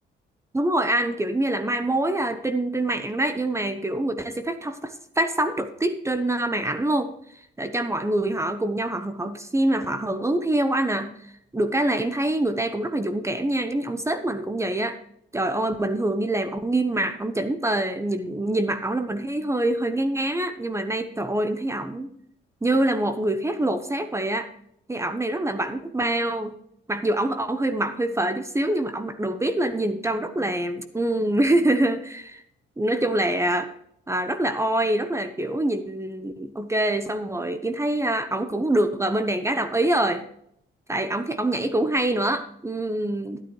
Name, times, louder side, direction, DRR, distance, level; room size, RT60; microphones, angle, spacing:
voice 1, 0.5-7.1 7.6-11.1 11.5-15.0 15.3-22.1 22.6-24.5 24.9-26.5 26.9-32.4 32.8-33.7 34.1-40.2 40.9-43.4, right 1 dB, 15° right, 10 dB, 0.9 m, -25 dB
11.5 x 10.0 x 3.1 m, 0.70 s
cardioid pair, 90°, 20 cm